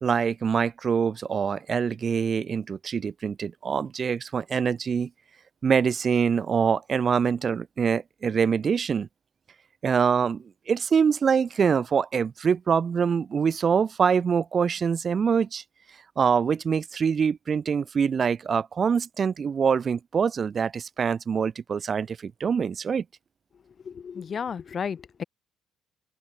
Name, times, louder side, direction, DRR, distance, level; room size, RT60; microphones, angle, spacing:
voice 1, 0.0-5.1 5.6-9.1 9.8-15.6 16.2-23.0, right 6 dB, 40° right, 0.7 m, -24 dB
voice 2, 23.5-25.2, left 6 dB, 40° left, 1.4 m, -34 dB
open air
cardioid pair, 90°, 0 cm